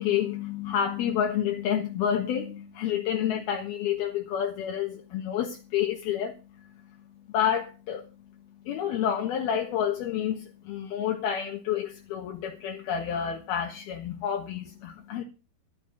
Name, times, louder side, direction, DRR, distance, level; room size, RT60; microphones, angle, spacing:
voice 1, 0.0-6.7 7.3-8.1 8.6-15.2, left 9 dB, 75° left, 3.3 m, -29 dB
12.5 x 11.5 x 5.6 m
omnidirectional pair, 4.6 m